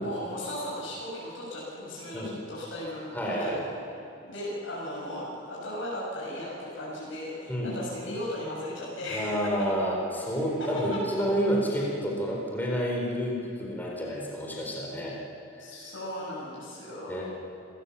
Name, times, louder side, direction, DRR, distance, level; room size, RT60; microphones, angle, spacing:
voice 1, 0.0-3.1 3.4-3.7 4.2-9.7 10.6-10.7 11.2-11.3 15.6-17.2, left 1 dB, 80° left, -7 dB, 7.1 m, -36 dB
voice 2, 3.1-3.6 7.5-7.7 9.1-15.2 15.6-15.7 17.1-17.2, equal, 10° left, -3 dB, 4.2 m, -29 dB
28.5 x 15.5 x 7.2 m, 2.7 s
head